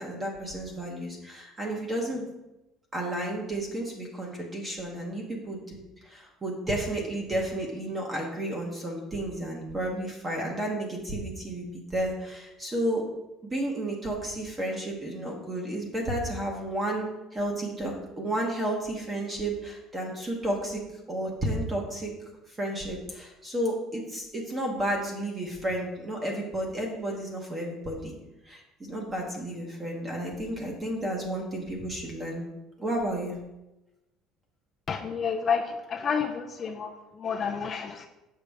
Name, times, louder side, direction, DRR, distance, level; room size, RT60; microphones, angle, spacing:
voice 1, 0.0-2.3 2.9-13.1 13.4-20.8 21.1-22.1 22.5-28.1 28.4-32.4 32.8-33.4, right 1 dB, 15° right, 0 dB, 1.0 m, -32 dB
voice 2, 34.9-38.1, left 6 dB, 30° left, 3 dB, 0.4 m, -30 dB
6.8 x 5.1 x 3.5 m, 0.96 s
cardioid pair, 155°, 0 cm